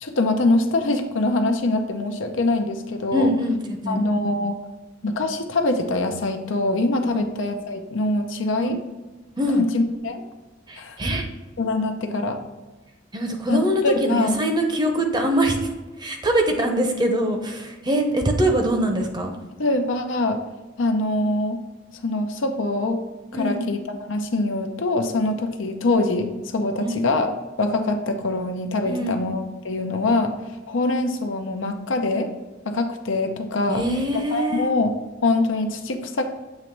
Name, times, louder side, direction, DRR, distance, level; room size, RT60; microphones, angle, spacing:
voice 1, 0.0-3.3 3.9-4.6 5.0-8.8 9.6-10.2 10.8-11.0 11.6-12.4 13.5-13.6 13.8-14.3 19.6-20.4 20.8-21.6 22.0-23.0 23.3-27.3 27.6-30.3 30.7-32.3 32.6-33.8 34.3-34.9 35.2-36.2, left 2 dB, 80° left, 6 dB, 0.7 m, -23 dB
voice 2, 3.1-4.1 7.1-7.3 8.6-8.8 9.4-9.7 10.7-11.3 13.1-19.4 23.3-23.7 26.8-27.0 28.8-29.2 33.7-34.7, equal, 20° right, 3 dB, 0.7 m, -23 dB
7.6 x 3.0 x 4.5 m, 1.2 s
head